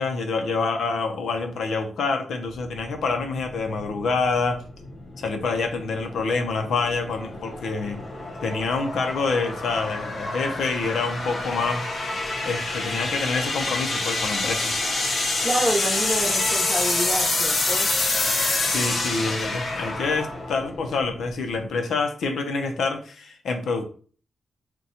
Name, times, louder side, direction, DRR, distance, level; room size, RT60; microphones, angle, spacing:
voice 1, 0.0-4.6 5.2-8.0 8.4-11.8 12.4-14.7 18.6-23.8, left 4 dB, 85° left, 5 dB, 0.5 m, -27 dB
sound 1, 2.5-21.6, left 2 dB, 45° left, 0.7 m, -27 dB
voice 2, 15.4-17.9, right 1 dB, 10° right, -1 dB, 0.8 m, -27 dB
2.8 x 2.2 x 4.0 m, 0.41 s
wide cardioid pair, 140°, 0 cm